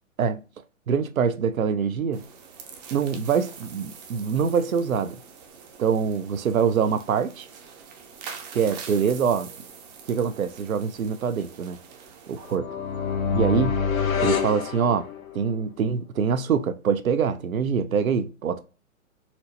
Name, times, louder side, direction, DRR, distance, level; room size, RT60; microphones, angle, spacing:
voice 1, 0.9-2.3 2.9-5.2 5.8-7.5 8.5-9.5 10.1-11.8 12.3-12.7 13.3-13.8 14.2-15.1 15.3-18.6, right 6 dB, 85° right, 0.6 m, -24 dB
sound 1, 2.1-12.6, right 6 dB, 30° right, 0.6 m, -44 dB
sound 2, 12.5-15.5, left 6 dB, 80° left, 0.9 m, -26 dB
4.3 x 2.0 x 2.6 m
hypercardioid pair, 125°, 41 cm